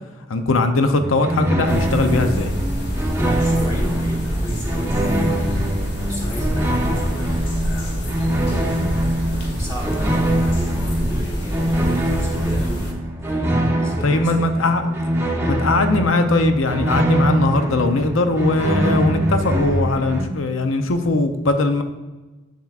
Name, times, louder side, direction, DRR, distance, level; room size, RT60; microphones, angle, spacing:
voice 1, 0.3-2.5 14.0-15.0 15.5-21.8, left 2 dB, 90° left, 8 dB, 0.6 m, -20 dB
sound 1, 1.0-20.2, right 1 dB, 15° right, 0.7 m, -23 dB
sound 2, 1.7-12.9, equal, 55° left, 1.2 m, -26 dB
voice 2, 3.2-5.6 6.0-8.0 8.3-12.9 13.3-14.5, equal, 20° left, -6 dB, 1.2 m, -33 dB
7.4 x 7.1 x 2.4 m, 1.1 s
head